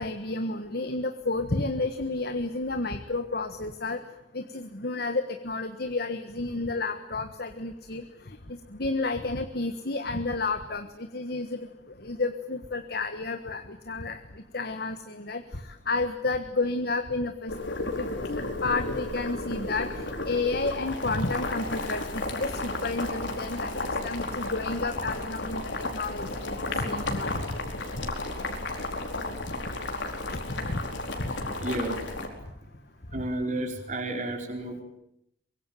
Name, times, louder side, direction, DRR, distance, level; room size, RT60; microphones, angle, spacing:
voice 1, 0.0-4.0 4.3-8.0 8.5-11.6 12.0-14.2 14.5-15.4 15.9-17.5 18.0-23.8 24.0-27.4 30.5-30.8 31.2-31.3, left 3 dB, 50° left, 8 dB, 1.5 m, -31 dB
Boiling, 17.5-32.3, left 2 dB, 70° left, 4.7 m, -33 dB
voice 2, 31.6-32.0 33.1-34.8, right 1 dB, 40° right, 3 dB, 4.6 m, -31 dB
24.5 x 23.0 x 9.2 m, 0.76 s
head